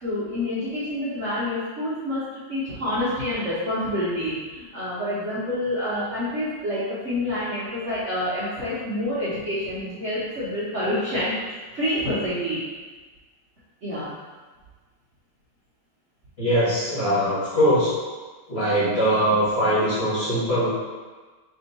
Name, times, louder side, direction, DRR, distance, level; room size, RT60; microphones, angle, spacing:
voice 1, 0.0-2.2 2.5-12.6 13.8-14.1, left 1 dB, 50° right, -12 dB, 0.9 m, -27 dB
voice 2, 16.4-17.9 18.5-20.7, equal, 35° left, -11 dB, 1.3 m, -21 dB
3.5 x 2.7 x 3.9 m, 1.4 s
omnidirectional pair, 2.2 m